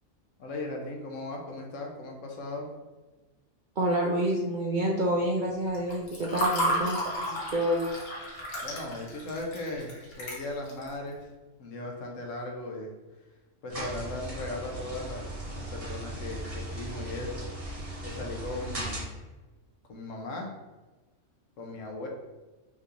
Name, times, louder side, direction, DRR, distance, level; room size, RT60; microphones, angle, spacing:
voice 1, 0.4-2.7 8.6-11.3 11.6-12.9 13.6-15.2 15.5-17.5 18.0-19.1 19.9-20.5 21.6-22.1, left 2 dB, 75° left, 1 dB, 1.2 m, -37 dB
voice 2, 3.8-7.9, right 1 dB, 55° right, -2 dB, 0.5 m, -28 dB
Water / Fill (with liquid), 5.7-10.9, equal, 50° left, 1.2 m, -32 dB
sound 1, 13.7-19.0, right 1 dB, 30° right, 1.1 m, -37 dB
5.6 x 3.2 x 2.5 m, 1.2 s
omnidirectional pair, 1.4 m